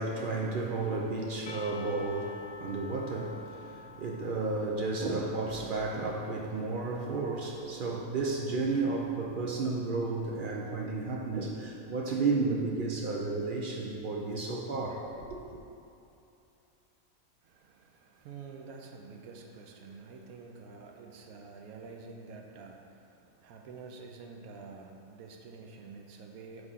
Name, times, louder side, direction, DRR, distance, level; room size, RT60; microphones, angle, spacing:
voice 1, 0.0-15.6, right 3 dB, 65° right, 0 dB, 0.5 m, -32 dB
Percussion / Church bell, 1.5-6.5, left 4 dB, 85° left, 1.1 m, -49 dB
voice 2, 17.4-26.7, right 4 dB, 90° right, 2 dB, 1.1 m, -48 dB
6.5 x 3.6 x 5.6 m, 2.7 s
omnidirectional pair, 1.5 m